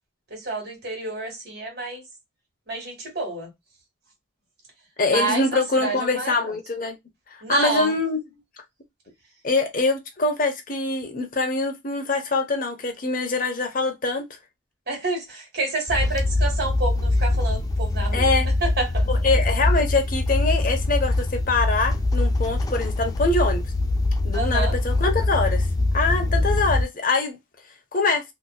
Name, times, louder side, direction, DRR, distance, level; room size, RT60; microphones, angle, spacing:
voice 1, 0.3-2.0 2.7-3.5 5.1-6.5 7.4-7.9 14.9-18.3 18.6-19.1 24.3-24.8, right 3 dB, 55° right, 1.6 m, -29 dB
voice 2, 5.0-7.0 7.3-8.2 9.4-14.3 18.1-18.5 19.1-23.6 24.2-25.7 25.9-27.4 27.9-28.2, left 3 dB, 45° left, 0.8 m, -24 dB
sound 1, 15.9-26.8, left 2 dB, 20° left, 0.3 m, -23 dB
2.8 x 2.7 x 2.2 m
head